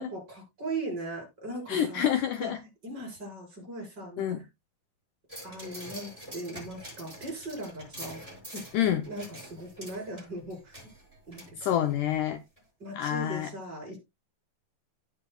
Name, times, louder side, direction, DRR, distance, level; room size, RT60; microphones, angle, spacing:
voice 1, 0.0-2.0 2.4-2.5 2.8-4.5 5.4-8.2 8.5-10.8 11.3-11.7 12.8-14.0, right 2 dB, 30° right, 5.1 m, -39 dB
voice 2, 1.7-2.6 4.2-4.4 8.7-9.0 11.6-12.4 12.9-13.5, left 10 dB, 75° left, 1.9 m, -27 dB
sound 1, 5.3-12.2 12.6-12.7, equal, 10° right, 6.1 m, -46 dB
16.5 x 6.0 x 2.2 m
omnidirectional pair, 4.0 m